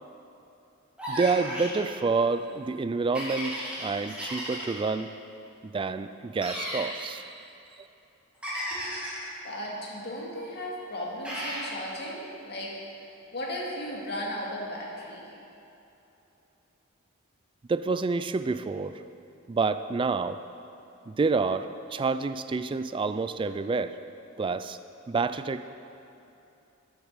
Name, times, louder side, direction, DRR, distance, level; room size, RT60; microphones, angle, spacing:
sound 1, 1.0-1.8 3.1-4.9 6.4-6.9 8.4-9.3 11.2-11.7, equal, 5° right, 2.5 m, -34 dB
voice 1, 1.1-5.1 5.6-7.4 7.8-7.9 17.7-19.0 19.5-20.4 21.1-24.0 24.4-24.8 25.1-25.7, right 4 dB, 25° right, 12 dB, 0.3 m, -28 dB
voice 2, 9.4-12.9 13.3-15.2, equal, 50° left, -3 dB, 2.2 m, -36 dB
10.0 x 7.2 x 6.6 m, 2.9 s
head